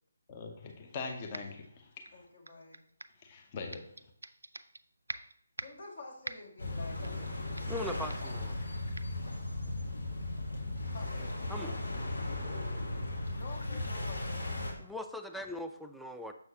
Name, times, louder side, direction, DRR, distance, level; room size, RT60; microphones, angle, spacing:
voice 1, 0.3-2.0 3.2-3.9, left 4 dB, 30° left, 3 dB, 0.7 m, -42 dB
sound 1, 1.3-1.7 2.0-3.2 3.7-4.8 5.1-5.9 6.2-6.6 7.0-7.3 7.6-7.8 8.1-8.3 8.9-9.1, right 2 dB, 75° right, 0.4 m, -44 dB
voice 2, 2.1-2.8 5.6-7.6 10.6-11.9 13.3-14.5, left 3 dB, 55° left, 0 dB, 1.8 m, -49 dB
sound 2, 6.6-14.7, left 2 dB, 70° left, 1.4 m, -36 dB
voice 3, 7.7-8.6 11.5-11.8 14.8-16.3, left 1 dB, ahead, 4 dB, 0.3 m, -40 dB
6.7 x 6.2 x 2.8 m, 0.69 s
figure-of-eight pair, 145°, 0 cm